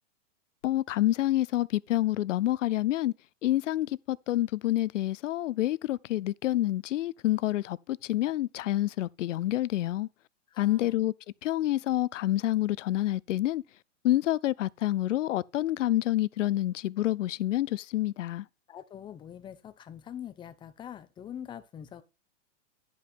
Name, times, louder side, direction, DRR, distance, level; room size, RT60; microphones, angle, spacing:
voice 1, 0.6-3.1 3.4-10.1 10.6-11.1 11.4-13.6 14.0-18.4, left 14 dB, 80° left, 0.5 m, -28 dB
voice 2, 10.5-11.0 18.7-22.0, left 9 dB, 15° left, 0.6 m, -44 dB
10.5 x 5.3 x 4.3 m
hypercardioid pair, 135°, 37 cm